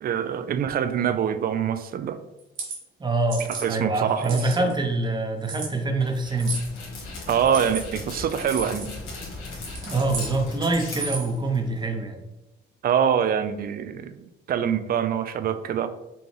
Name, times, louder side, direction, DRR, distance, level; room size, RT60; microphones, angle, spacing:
voice 1, 0.0-2.2 3.5-4.7 7.3-8.9 12.8-14.2 14.5-15.9, right 8 dB, 50° right, 12 dB, 0.4 m, -25 dB
sound 1, 2.4-2.8 3.3-3.7 4.2-4.7 5.4-5.7 6.4-6.7 7.4-7.8 8.4-8.9 9.6-10.3 10.9-11.3, right 4 dB, 75° right, 1.3 m, -34 dB
voice 2, 3.0-6.6 9.8-12.2, right 2 dB, 20° right, 3 dB, 0.8 m, -25 dB
Dog, 6.0-11.8, left 2 dB, 90° left, 1.4 m, -38 dB
5.1 x 2.3 x 3.3 m, 0.94 s
cardioid pair, 90°, 20 cm